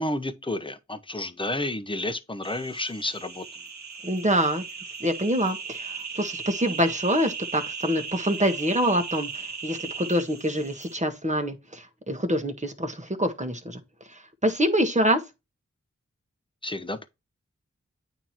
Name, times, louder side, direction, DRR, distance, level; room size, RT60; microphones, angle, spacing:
voice 1, 0.0-3.5 16.6-17.1, left 1 dB, 15° left, 0.9 m, -31 dB
sound 1, 2.4-11.0, right 5 dB, 65° right, 1.1 m, -37 dB
voice 2, 4.0-4.6 5.0-13.8 14.1-15.2, equal, 25° right, 1.5 m, -26 dB
8.8 x 3.0 x 4.4 m
cardioid pair, 45°, 30 cm